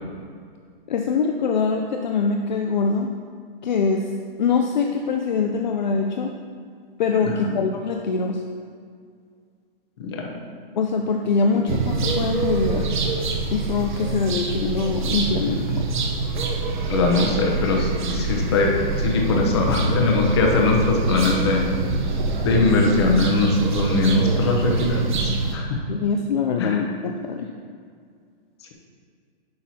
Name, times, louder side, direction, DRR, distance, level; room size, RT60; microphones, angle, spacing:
voice 1, 0.9-3.1 3.6-4.1 4.4-6.3 7.0-8.4 10.8-12.9 13.5-15.9 25.9-27.5, left 5 dB, 50° left, 2 dB, 0.5 m, -23 dB
voice 2, 7.2-7.5 10.0-10.3 16.9-18.7 19.0-21.7 22.4-25.8 26.6-26.8, left 3 dB, 25° left, 0 dB, 0.8 m, -21 dB
sound 1, 11.7-25.6, right 3 dB, 55° right, 0.9 m, -25 dB
10.5 x 6.1 x 2.8 m, 2.1 s
hypercardioid pair, 175°, 30 cm